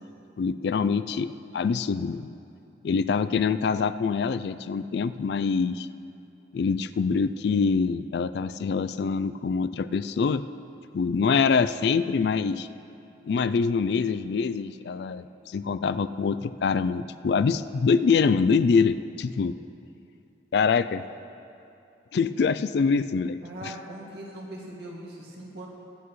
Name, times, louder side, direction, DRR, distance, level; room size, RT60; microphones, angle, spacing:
voice 1, 0.4-2.4 2.8-5.9 6.5-10.4 10.9-12.7 13.2-19.5 20.5-21.0 22.1-23.4, left 5 dB, 60° left, 14 dB, 0.3 m, -25 dB
voice 2, 23.4-25.7, right 1 dB, 60° right, -3 dB, 2.2 m, -40 dB
23.0 x 8.1 x 3.2 m, 2.7 s
head